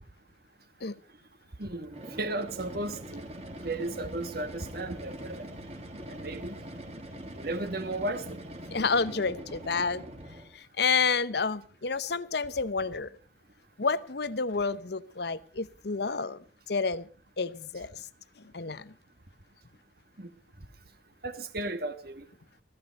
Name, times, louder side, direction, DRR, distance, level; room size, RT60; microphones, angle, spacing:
voice 1, 1.6-3.2 3.6-5.5 6.1-6.6 7.3-8.4 20.2-20.3 21.2-22.3, right 2 dB, 50° right, 1.5 m, -35 dB
sound 1, 1.8-10.6, right 1 dB, 35° right, 2.3 m, -43 dB
voice 2, 8.7-10.0 10.5-13.1 13.8-16.4 16.7-17.1 17.4-18.0 18.5-18.9, left 4 dB, 55° left, 0.8 m, -29 dB
16.0 x 15.5 x 5.3 m
head